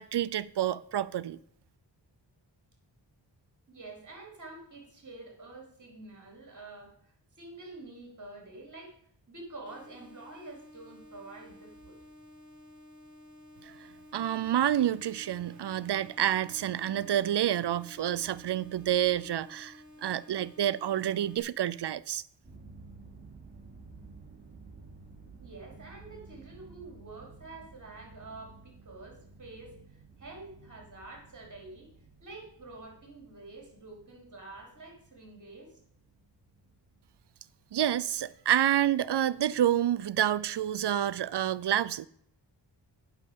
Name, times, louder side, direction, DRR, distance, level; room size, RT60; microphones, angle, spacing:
voice 1, 0.0-1.4 14.1-22.2 37.7-42.1, right 11 dB, 65° right, 0.6 m, -28 dB
voice 2, 3.7-9.0 9.3-12.0 25.4-31.9 32.2-35.8, right 2 dB, 40° right, 4.5 m, -48 dB
sound 1, 9.7-21.4, left 1 dB, 20° left, 2.8 m, -53 dB
sound 2, 22.4-38.5, right 4 dB, 20° right, 4.4 m, -54 dB
8.9 x 6.5 x 7.2 m
cardioid pair, 60°, 44 cm